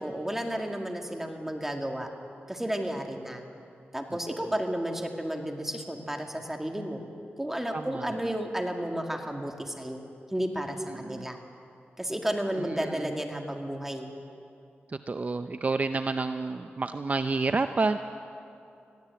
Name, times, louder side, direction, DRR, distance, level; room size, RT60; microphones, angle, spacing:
voice 1, 0.0-2.1 2.5-3.4 3.9-7.0 7.4-10.0 10.3-11.4 12.0-14.1, right 1 dB, 10° right, 3 dB, 2.0 m, -32 dB
voice 2, 7.7-8.0 11.0-11.3 12.8-13.1 15.1-18.0, right 3 dB, 40° right, 9 dB, 0.6 m, -29 dB
21.0 x 14.5 x 8.4 m, 2.6 s
wide cardioid pair, 100°, 4 cm